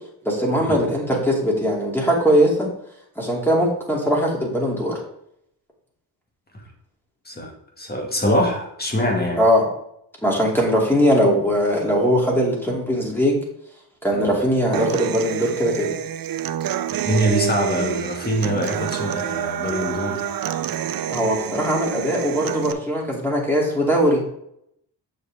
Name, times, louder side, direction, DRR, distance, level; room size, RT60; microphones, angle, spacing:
voice 1, 0.2-2.7 3.2-4.9 9.4-9.6 10.2-13.4 14.0-15.9 21.1-24.2, equal, 5° left, -2 dB, 2.7 m, -20 dB
voice 2, 7.8-9.4 14.1-14.3 16.9-20.3, equal, 25° left, 1 dB, 2.1 m, -23 dB
Human voice / Acoustic guitar, 14.7-22.7, right 10 dB, 60° right, 0.6 m, -28 dB
7.5 x 6.5 x 3.5 m, 0.74 s
cardioid pair, 105°, 40 cm